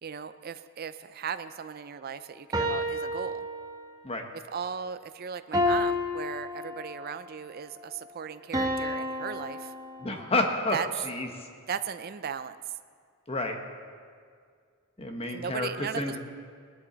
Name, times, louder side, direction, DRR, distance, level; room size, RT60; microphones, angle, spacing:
voice 1, 0.0-3.5 4.3-9.7 10.7-10.9 11.7-12.6 15.3-16.2, right 7 dB, 45° right, 11 dB, 0.4 m, -37 dB
sound 1, 2.5-4.1 5.5-7.2 8.5-10.4, left 1 dB, 15° right, 1.0 m, -30 dB
voice 2, 10.0-10.8 11.0-11.3 13.3-13.6 15.0-16.2, left 2 dB, 25° left, 4 dB, 1.2 m, -29 dB
18.5 x 11.0 x 4.0 m, 2.1 s
head